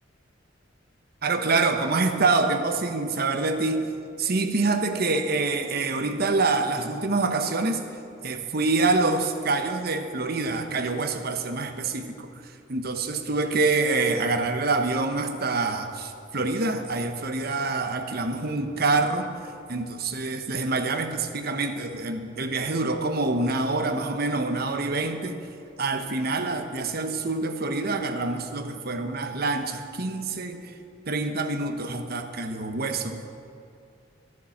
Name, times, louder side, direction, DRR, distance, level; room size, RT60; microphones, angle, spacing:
voice 1, 1.2-3.9 4.2-7.8 8.2-12.3 12.7-19.3 19.7-25.4 25.8-30.6 31.1-33.3, right 3 dB, 55° right, 6 dB, 1.1 m, -26 dB
13.0 x 11.0 x 7.3 m, 2.5 s
head